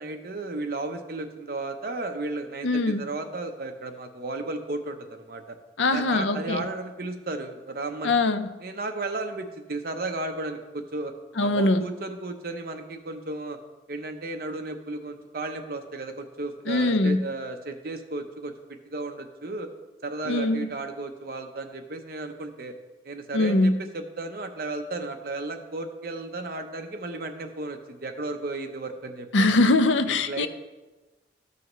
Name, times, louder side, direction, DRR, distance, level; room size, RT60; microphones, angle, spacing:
voice 1, 0.0-5.6 5.9-8.2 8.6-11.1 11.4-13.6 13.9-18.5 18.8-19.7 20.0-22.8 23.0-29.5 30.1-30.5, right 2 dB, 55° right, 5 dB, 0.8 m, -34 dB
voice 2, 2.6-3.0 5.8-6.6 8.0-8.5 11.4-11.9 16.7-17.2 20.3-20.7 23.3-23.8 29.3-30.5, left 2 dB, 90° left, 10 dB, 0.6 m, -22 dB
13.5 x 5.6 x 3.1 m, 1.2 s
head